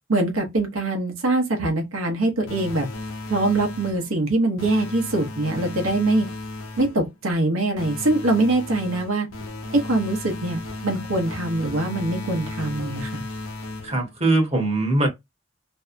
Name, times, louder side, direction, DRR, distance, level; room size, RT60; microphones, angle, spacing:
voice 1, 0.1-2.9 3.3-6.3 6.8-9.3 9.7-13.2, right 2 dB, 75° right, 0.8 m, -23 dB
sound 1, 2.5-4.1 4.6-7.1 7.8-14.2, left 2 dB, 85° left, 0.7 m, -35 dB
voice 2, 13.8-15.1, right 2 dB, 30° right, 0.9 m, -21 dB
2.6 x 2.2 x 2.4 m
head